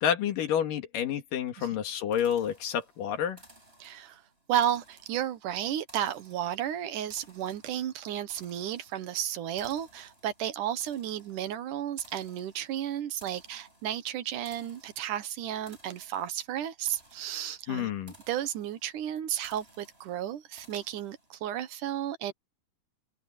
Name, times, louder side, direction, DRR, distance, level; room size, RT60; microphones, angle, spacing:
voice 1, 0.0-3.4 17.7-18.1, left 9 dB, 90° left, 3.5 m, -29 dB
sound 1, 2.1-21.5, right 1 dB, 15° right, 7.3 m, -59 dB
voice 2, 3.8-4.2 4.5-17.9 18.3-22.3, right 11 dB, 75° right, 2.6 m, -33 dB
omnidirectional pair, 3.8 m